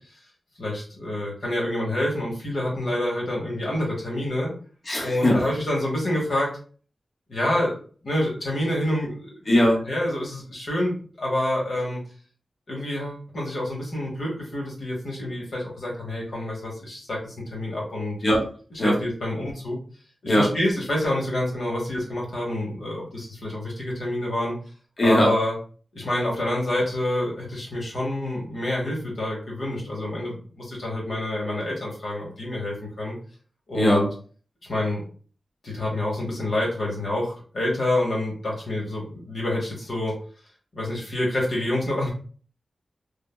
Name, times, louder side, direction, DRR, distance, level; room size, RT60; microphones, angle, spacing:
voice 1, 0.6-4.5 5.0-6.5 7.3-7.8 8.0-9.3 9.9-12.0 12.7-18.2 18.7-19.8 20.2-24.6 25.0-25.5 25.9-33.2 33.7-34.0 34.7-35.0 35.6-40.1 40.7-42.1, left 1 dB, 75° left, -3 dB, 0.9 m, -27 dB
voice 2, 4.9-5.4 9.5-9.8 18.2-18.4 18.8-18.9 20.3-20.5 25.0-25.3 33.7-34.1, equal, 40° left, -3 dB, 1.0 m, -19 dB
3.3 x 2.2 x 2.2 m, 0.41 s
wide cardioid pair, 95°, 0 cm